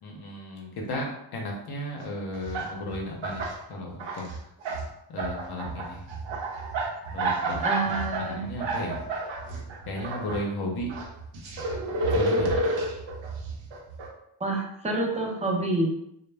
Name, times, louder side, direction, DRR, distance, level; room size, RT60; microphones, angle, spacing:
voice 1, 0.0-4.2 5.1-6.1 7.1-9.0 9.9-10.9 12.1-12.6, left 1 dB, 55° left, 0 dB, 0.7 m, -34 dB
sound 1, 2.0-2.1 2.3-3.6 3.9-4.9 5.2-10.4 10.8-14.1, right 2 dB, 65° right, 0.7 m, -30 dB
voice 2, 7.6-8.5 14.4-16.0, right 2 dB, 15° right, -1 dB, 0.6 m, -27 dB
2.1 x 2.1 x 3.3 m, 0.79 s
cardioid pair, 85°, 48 cm